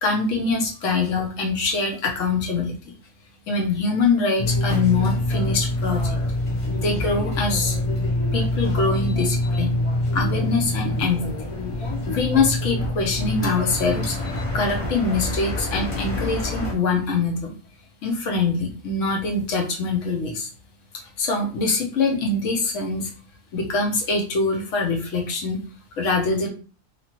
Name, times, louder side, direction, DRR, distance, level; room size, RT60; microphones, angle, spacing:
voice 1, 0.0-2.7 3.5-6.2 6.8-7.8 8.3-9.7 10.1-11.2 12.0-17.5 18.0-20.5 21.2-23.1 23.5-25.6 26.0-26.5, left 3 dB, 70° left, 1 dB, 1.1 m, -24 dB
sound 1, 4.4-16.7, left 1 dB, 40° left, 0.5 m, -25 dB
2.9 x 2.5 x 2.9 m, 0.38 s
omnidirectional pair, 1.4 m